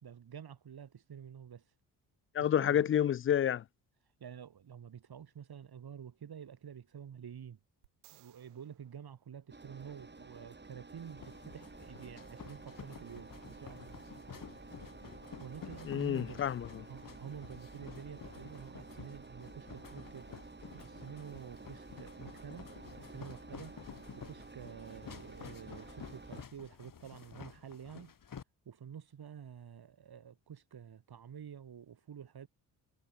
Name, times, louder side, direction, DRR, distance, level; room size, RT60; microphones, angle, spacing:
voice 1, 0.0-1.6 2.4-2.9 4.2-7.6 8.1-14.0 15.4-16.5 16.9-20.3 20.7-23.8 24.1-28.1 28.6-32.5, right 8 dB, 55° right, 4.7 m, -49 dB
voice 2, 2.3-3.6 15.9-16.9, left 10 dB, 30° left, 0.4 m, -29 dB
sound 1, 7.8-10.1 13.5-13.6, right 23 dB, 90° right, 6.3 m, -65 dB
Engine, 9.5-26.4, right 3 dB, 25° right, 3.9 m, -52 dB
sound 2, 11.0-28.4, left 7 dB, 45° left, 3.0 m, -51 dB
hypercardioid pair, 45°, 45 cm